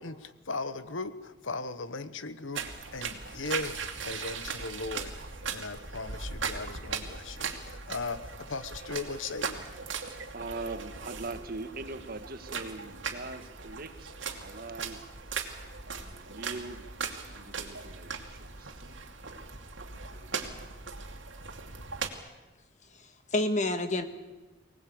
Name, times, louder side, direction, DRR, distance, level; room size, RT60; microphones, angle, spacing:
voice 1, 0.0-9.6, left 3 dB, 85° left, 13 dB, 1.2 m, -38 dB
sound 1, 2.5-22.1, right 5 dB, 75° right, 2.6 m, -39 dB
voice 2, 9.9-14.1 14.4-15.0 15.9-16.9 17.3-18.9 20.1-20.6, right 3 dB, 50° right, 9 dB, 1.6 m, -42 dB
voice 3, 22.9-24.0, left 2 dB, 40° left, 9 dB, 1.8 m, -29 dB
24.5 x 19.0 x 8.7 m, 1.1 s
head